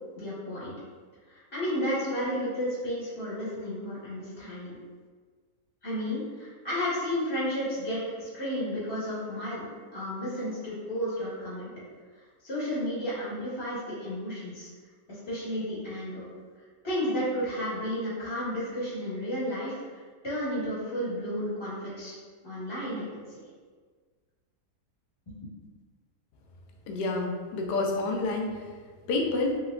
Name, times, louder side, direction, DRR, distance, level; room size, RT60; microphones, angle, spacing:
voice 1, 0.1-0.7 1.3-4.7 5.8-11.7 12.2-14.7 15.3-16.2 16.8-22.1 22.4-23.4, equal, 20° left, -9 dB, 0.8 m, -32 dB
voice 2, 26.9-28.5 29.1-29.6, left 2 dB, 80° left, 2 dB, 1.1 m, -28 dB
3.4 x 2.9 x 2.4 m, 1.5 s
omnidirectional pair, 1.8 m